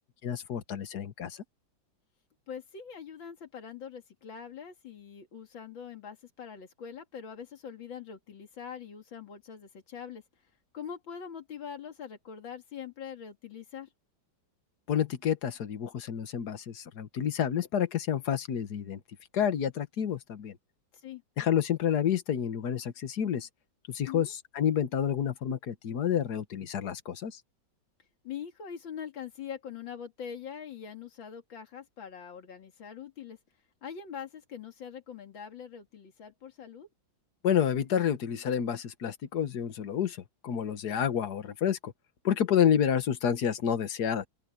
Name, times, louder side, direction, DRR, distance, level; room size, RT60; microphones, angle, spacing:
voice 1, 0.2-1.4 14.9-19.0 19.3-20.5 21.4-23.5 23.9-27.3 37.4-40.2 40.4-41.9 42.2-44.3, left 9 dB, 60° left, 1.8 m, -29 dB
voice 2, 2.5-10.2 10.7-13.9 20.9-21.2 24.1-24.3 28.2-33.4 33.8-36.9, left 7 dB, 90° left, 2.9 m, -43 dB
open air
omnidirectional pair, 2.0 m